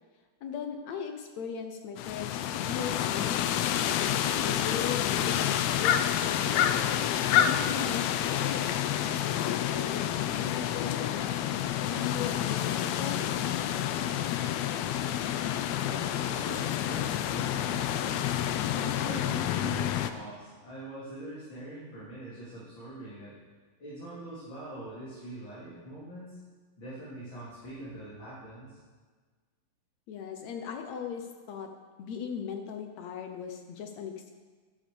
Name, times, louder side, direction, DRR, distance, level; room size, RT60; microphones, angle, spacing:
voice 1, 0.4-3.7 4.1-6.8 7.4-8.8 9.3-11.1 11.8-13.2 30.1-31.7 32.0-34.4, left 7 dB, 70° left, 5 dB, 1.8 m, -38 dB
sound 1, 2.0-20.1, left 10 dB, 85° left, 1.5 m, -29 dB
voice 2, 15.8-18.4 18.7-23.3 23.8-26.4 26.8-28.8, right 1 dB, 35° left, -10 dB, 4.0 m, -43 dB
11.5 x 10.5 x 7.0 m, 1.4 s
omnidirectional pair, 3.9 m